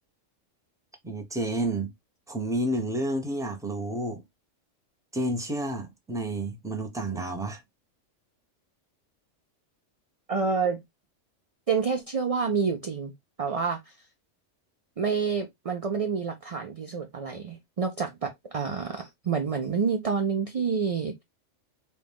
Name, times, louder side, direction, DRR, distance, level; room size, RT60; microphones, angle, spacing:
voice 1, 1.0-1.9 2.3-4.2 5.1-7.6, right 1 dB, 5° right, 0.6 m, -30 dB
voice 2, 10.3-10.8 11.7-13.1 13.4-13.8 15.0-21.2, right 5 dB, 55° right, 0.4 m, -28 dB
4.0 x 2.4 x 3.5 m
omnidirectional pair, 1.3 m